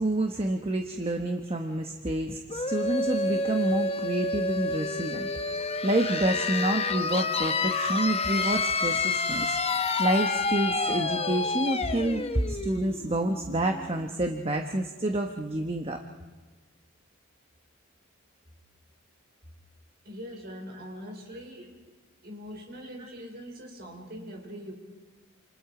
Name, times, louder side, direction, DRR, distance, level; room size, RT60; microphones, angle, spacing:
voice 1, 0.0-5.3 5.6-16.0, right 1 dB, 25° right, 4 dB, 1.1 m, -28 dB
sound 1, 2.5-14.0, left 3 dB, 30° left, 1.0 m, -29 dB
voice 2, 20.0-21.8 22.2-24.7, equal, 50° right, 2 dB, 5.2 m, -42 dB
29.0 x 28.0 x 5.0 m, 1.3 s
head